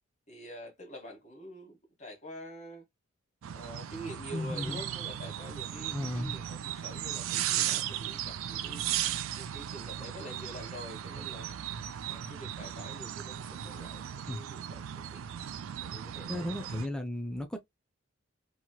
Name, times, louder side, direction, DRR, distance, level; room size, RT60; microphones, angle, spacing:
voice 1, 0.3-2.8 3.5-8.8 9.4-11.6 12.0-15.2 15.8-16.7, equal, 35° left, 1.3 m, -47 dB
sound 1, 3.4-16.9, right 10 dB, 80° right, 0.4 m, -36 dB
voice 2, 4.3-4.8 5.9-6.3 14.3-14.4 16.3-17.6, left 1 dB, 5° left, 0.4 m, -35 dB
3.0 x 2.9 x 2.2 m
head